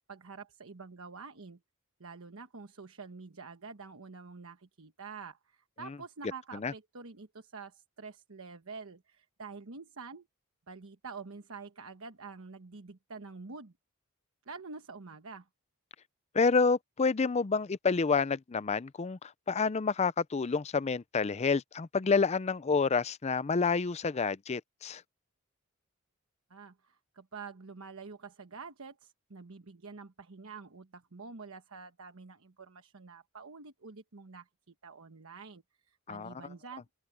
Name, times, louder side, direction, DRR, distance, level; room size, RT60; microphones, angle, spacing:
voice 1, 0.0-1.6 2.0-10.3 10.7-13.7 14.4-15.5 26.5-36.8, right 4 dB, 75° right, 1.1 m, -47 dB
voice 2, 16.3-25.0 36.1-36.3, left 4 dB, 30° left, 0.5 m, -28 dB
head